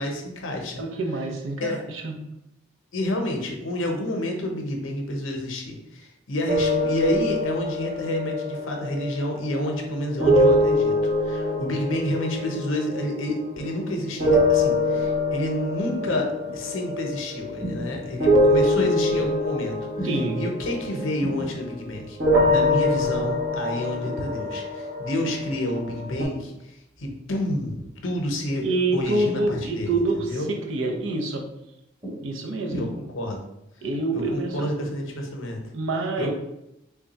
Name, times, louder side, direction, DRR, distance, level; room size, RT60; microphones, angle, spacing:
voice 1, 0.0-0.8 1.6-1.8 2.9-20.1 20.4-22.2 22.5-28.6 28.9-29.9 30.3-30.5 32.7-33.4 34.1-35.6 36.2-36.3, left 1 dB, 75° left, 3 dB, 0.7 m, -29 dB
voice 2, 0.8-2.1 20.0-20.4 28.6-31.5 32.2-32.9 33.8-34.9 35.7-36.3, right 2 dB, 75° right, 3 dB, 0.6 m, -27 dB
sound 1, 6.5-13.8 14.2-21.8 22.2-26.2, left 1 dB, 50° right, 1.0 m, -24 dB
sound 2, 13.3-13.7 14.7-15.1 16.1-16.6 17.6-18.0 18.8-19.2 19.9-20.3 21.2-21.5 22.7-23.0 24.0-24.3 25.2-25.5 26.3-26.6 27.6-27.9 28.8-29.1 30.0-30.3 30.8-31.1 32.0-32.3 32.7-32.8, equal, 20° right, 1.3 m, -36 dB
3.6 x 2.2 x 4.0 m, 0.85 s
head